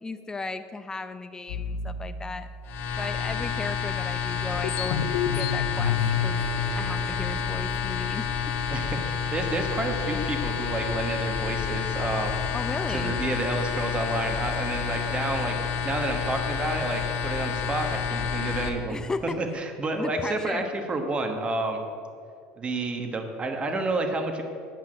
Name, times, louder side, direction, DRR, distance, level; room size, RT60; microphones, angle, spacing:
voice 1, 0.0-2.5 3.0-5.9 6.2-6.4 6.8-8.5 12.5-13.1 18.9-19.4 19.9-20.7, left 3 dB, 15° left, 10 dB, 0.6 m, -35 dB
sound 1, 1.5-3.4 3.9-4.0 4.3-7.8, left 7 dB, 75° left, 0.7 m, -30 dB
sound 2, 2.7-18.7, left 7 dB, 55° left, 1.5 m, -29 dB
sound 3, 5.8-12.5, right 4 dB, 65° right, 1.7 m, -47 dB
voice 2, 8.7-12.4 12.9-15.5 15.8-19.0 19.2-21.8 22.6-24.4, right 2 dB, 25° right, 5 dB, 1.3 m, -30 dB
10.5 x 5.6 x 7.6 m, 2.4 s
supercardioid pair, 115°, 5 cm